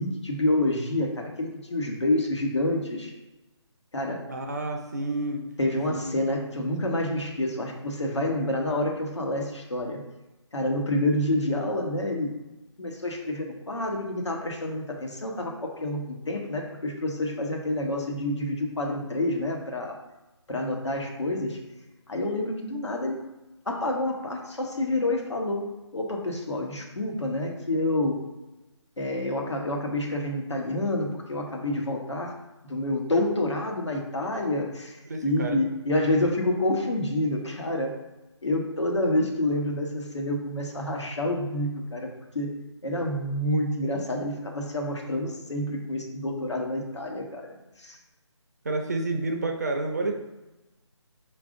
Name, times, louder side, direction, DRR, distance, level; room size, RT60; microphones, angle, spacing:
voice 1, 0.0-3.1 3.9-4.2 5.6-10.0 10.5-12.4 12.8-20.0 20.5-21.6 22.1-23.2 23.7-28.2 29.0-32.3 32.6-38.0 38.4-42.1 42.3-42.5 42.8-48.0, left 1 dB, 70° left, 1 dB, 1.2 m, -28 dB
voice 2, 4.3-5.4 5.9-6.0 35.0-35.6 48.6-50.1, right 2 dB, 35° right, 3 dB, 0.5 m, -29 dB
5.2 x 2.6 x 3.7 m, 1.0 s
figure-of-eight pair, 155°, 15 cm